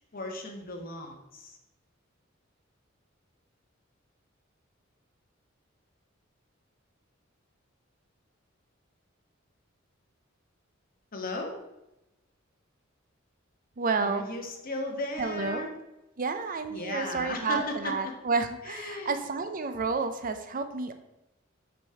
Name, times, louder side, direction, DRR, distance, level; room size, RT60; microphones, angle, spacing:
voice 1, 0.1-1.6 11.1-11.5 14.0-15.7 16.7-18.1 18.6-19.1, left 2 dB, 45° left, 3 dB, 1.2 m, -36 dB
voice 2, 13.8-14.3 15.2-15.7 16.2-20.9, right 4 dB, 45° right, 9 dB, 0.5 m, -30 dB
6.2 x 5.1 x 4.7 m, 0.94 s
head